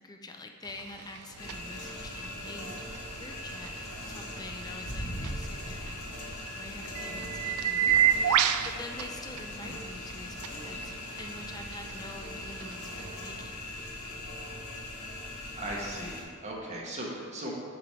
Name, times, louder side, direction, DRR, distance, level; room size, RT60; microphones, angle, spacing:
voice 1, 0.0-3.8 4.1-6.0 6.5-13.6, left 2 dB, 15° left, 4 dB, 0.5 m, -46 dB
sound 1, 0.7-13.2, right 9 dB, 75° right, 0.3 m, -33 dB
sound 2, 1.4-16.2, left 1 dB, 90° left, 1.5 m, -40 dB
voice 2, 15.1-17.5, right 1 dB, 30° right, -3 dB, 1.3 m, -38 dB
8.7 x 3.4 x 5.6 m, 2.3 s
head